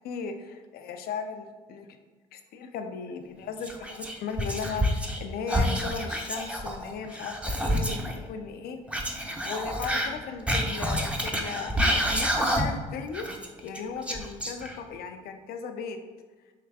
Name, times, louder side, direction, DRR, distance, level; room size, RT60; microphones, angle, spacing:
voice 1, 0.0-1.9 2.3-9.1 9.4-13.3 13.6-16.0, left 5 dB, 70° left, 7 dB, 0.5 m, -37 dB
Whispering, 3.6-5.2 5.5-8.1 8.9-12.9 13.1-15.0, equal, 5° right, 0.6 m, -28 dB
4.6 x 3.1 x 2.3 m, 1.3 s
supercardioid pair, 60°, 16 cm